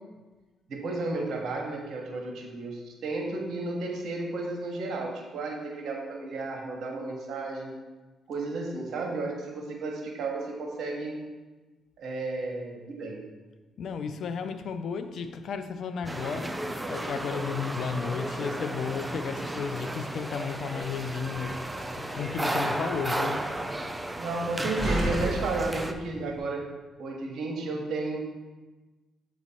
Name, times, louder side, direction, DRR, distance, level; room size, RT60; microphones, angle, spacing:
voice 1, 0.7-7.7 8.3-11.2 12.0-13.2 24.1-26.6 27.0-28.3, right 3 dB, 70° right, 1 dB, 1.2 m, -33 dB
voice 2, 13.8-23.4, left 6 dB, 70° left, 9 dB, 0.5 m, -33 dB
sound 1, 16.1-25.9, right 1 dB, 10° right, 0.5 m, -34 dB
Slam, 20.8-26.4, right 1 dB, 5° left, 1.6 m, -36 dB
7.8 x 3.1 x 4.2 m, 1.2 s
supercardioid pair, 65°, 0 cm